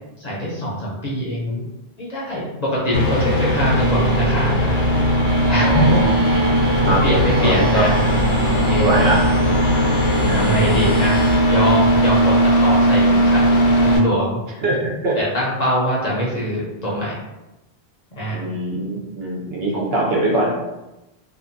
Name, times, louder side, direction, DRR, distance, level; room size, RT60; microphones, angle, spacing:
voice 1, 0.2-1.6 2.0-4.7 5.5-6.0 6.4-8.0 8.7-9.0 10.4-11.2 11.5-13.4 13.8-14.4 15.2-17.2 18.1-18.4, equal, 45° left, -5 dB, 0.6 m, -23 dB
sound 1, 2.9-14.0, equal, 75° left, 0.9 m, -17 dB
sound 2, 5.4-11.4, equal, 50° right, 0.5 m, -31 dB
voice 2, 5.5-6.2 6.8-7.0 7.4-7.8 8.7-9.2 10.2-10.7 14.6-15.2 18.3-20.5, right 2 dB, 70° right, -2 dB, 0.9 m, -22 dB
2.5 x 2.4 x 2.5 m, 0.99 s
omnidirectional pair, 1.1 m